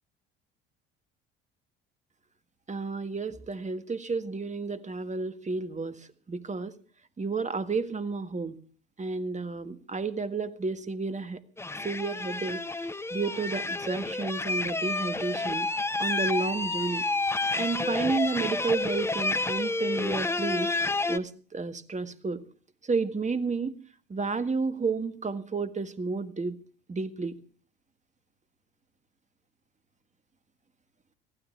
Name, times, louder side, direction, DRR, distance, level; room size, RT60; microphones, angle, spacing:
voice 1, 2.7-6.7 7.2-8.6 9.0-11.4 11.8-15.7 16.0-17.0 17.5-20.7 21.1-22.4 22.8-23.8 24.1-26.6 26.9-27.4, right 4 dB, 25° right, 11 dB, 1.6 m, -31 dB
sound 1, 11.6-21.2, left 2 dB, 10° left, 0.8 m, -30 dB
22.0 x 15.5 x 3.3 m, 0.42 s
figure-of-eight pair, 55°, 30 cm